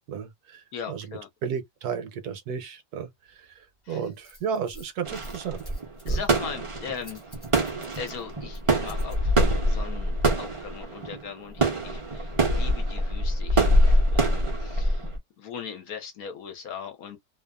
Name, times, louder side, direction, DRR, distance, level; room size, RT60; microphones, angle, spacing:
voice 1, 0.1-1.1 1.4-3.1 3.4-3.5 3.9-5.6 6.0-6.2, right 7 dB, 70° right, 1.1 m, -33 dB
voice 2, 0.7-1.3 3.8-4.0 6.1-7.2 8.0-9.4 9.7-15.1 15.4-17.2, left 7 dB, 65° left, 1.0 m, -39 dB
Rattle, 3.2-9.2, right 2 dB, 20° left, 0.6 m, -40 dB
sound 1, 5.0-15.2, right 1 dB, 50° right, 0.3 m, -25 dB
2.7 x 2.4 x 2.2 m
omnidirectional pair, 1.8 m